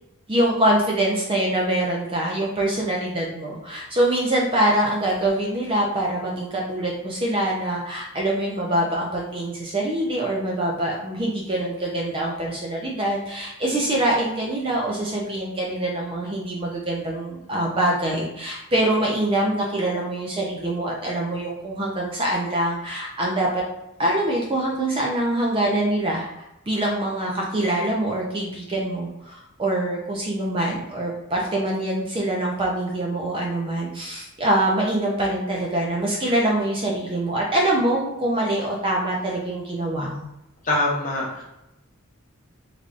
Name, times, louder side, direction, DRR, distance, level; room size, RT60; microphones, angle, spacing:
voice 1, 0.3-23.6 24.0-40.3, right 1 dB, 25° right, -2 dB, 0.4 m, -24 dB
voice 2, 40.6-41.4, left 2 dB, 35° left, -4 dB, 0.8 m, -23 dB
3.3 x 2.5 x 2.5 m, 0.88 s
head